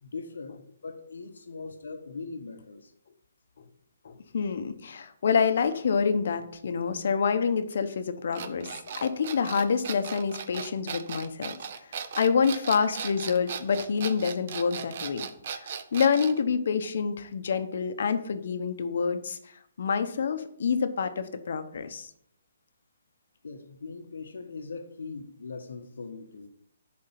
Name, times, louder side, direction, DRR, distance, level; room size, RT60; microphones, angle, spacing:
voice 1, 0.0-2.9 23.4-26.5, left 4 dB, 90° left, 6 dB, 1.2 m, -40 dB
voice 2, 4.0-8.7 9.0-11.5 12.2-15.3 15.5-19.5 19.8-22.1, left 6 dB, 60° left, 9 dB, 1.0 m, -27 dB
sound 1, 8.3-16.4, right 7 dB, 45° right, 0.7 m, -37 dB
10.5 x 4.4 x 5.9 m, 0.70 s
hypercardioid pair, 165°, 0 cm